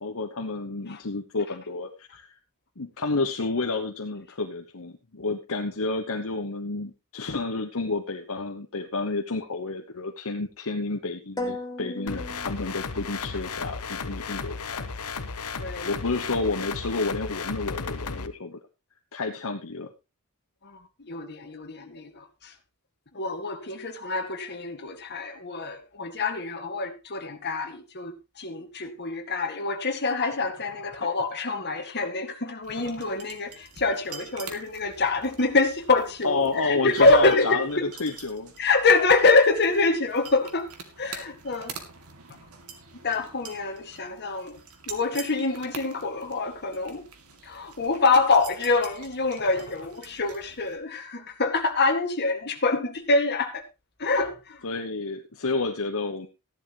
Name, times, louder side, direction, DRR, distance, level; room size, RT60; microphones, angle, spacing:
voice 1, 0.0-2.3 2.8-14.9 15.8-18.6 19.1-19.9 31.0-31.1 36.2-38.5 54.6-56.3, left 3 dB, 65° left, 1.1 m, -30 dB
sound 1, 11.4-13.3, left 1 dB, 15° left, 2.2 m, -36 dB
sound 2, 12.1-18.3, left 5 dB, 90° left, 1.0 m, -34 dB
voice 2, 15.5-15.9 20.6-22.5 23.1-37.9 38.6-40.7 41.0-41.7 43.0-44.6 44.9-47.0 47.4-53.6 54.0-54.6, left 3 dB, 50° left, 2.0 m, -25 dB
sound 3, 32.6-50.8, right 6 dB, 75° right, 2.3 m, -46 dB
14.5 x 11.0 x 3.1 m
head